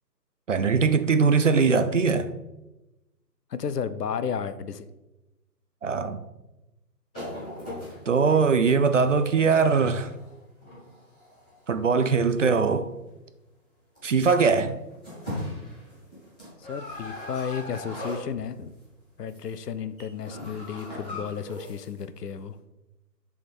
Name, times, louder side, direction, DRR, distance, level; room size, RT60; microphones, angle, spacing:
voice 1, 0.5-2.3 5.8-6.2 8.1-10.1 11.7-12.9 14.0-14.8, right 5 dB, 50° right, 0.5 m, -21 dB
voice 2, 3.5-4.9 16.6-18.7 19.2-22.6, left 7 dB, 70° left, 0.6 m, -33 dB
sound 1, 7.1-11.9 12.6-12.8 13.9-14.0 14.2-14.6 14.9-18.8 19.1-19.5 19.8-22.0 22.3-22.4, left 1 dB, 5° left, 0.6 m, -39 dB
7.2 x 3.6 x 4.5 m
figure-of-eight pair, 145°, 49 cm